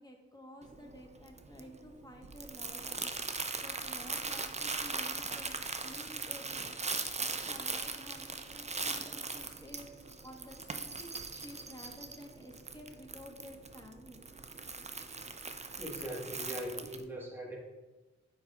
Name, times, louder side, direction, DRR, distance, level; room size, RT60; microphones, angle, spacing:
voice 1, 0.0-14.2 16.4-16.8, equal, 15° left, 1 dB, 1.2 m, -52 dB
Crumpling crinkling, 0.6-17.0, right 4 dB, 25° right, 0.4 m, -40 dB
voice 2, 15.8-17.6, equal, 5° right, -4 dB, 1.5 m, -41 dB
9.4 x 4.3 x 2.4 m, 1.1 s
cardioid pair, 60°, 29 cm